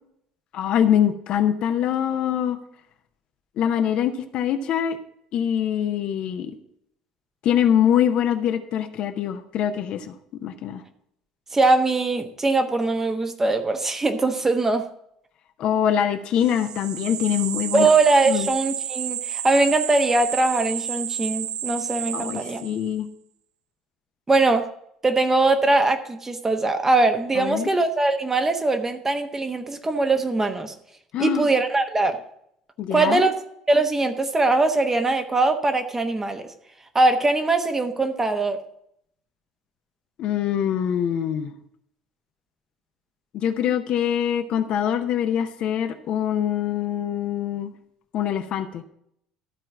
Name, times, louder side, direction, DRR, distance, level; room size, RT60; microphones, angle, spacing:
voice 1, 0.5-2.6 3.6-5.0 5.3-6.5 7.4-10.1 10.4-10.8 15.6-17.9 18.3-18.5 22.1-23.1 27.4-27.7 31.1-31.5 32.8-33.2 40.2-41.5 43.3-47.7 48.1-48.8, left 9 dB, 50° left, 8 dB, 0.8 m, -24 dB
voice 2, 11.5-14.8 17.7-22.6 24.3-24.7 25.0-30.7 31.2-32.2 32.9-33.3 33.7-36.5 36.9-38.6, right 2 dB, 20° right, 6 dB, 1.1 m, -21 dB
sound 1, 16.4-22.9, right 9 dB, 40° right, 0.3 m, -31 dB
13.0 x 4.4 x 7.3 m, 0.73 s
figure-of-eight pair, 60°, 2 cm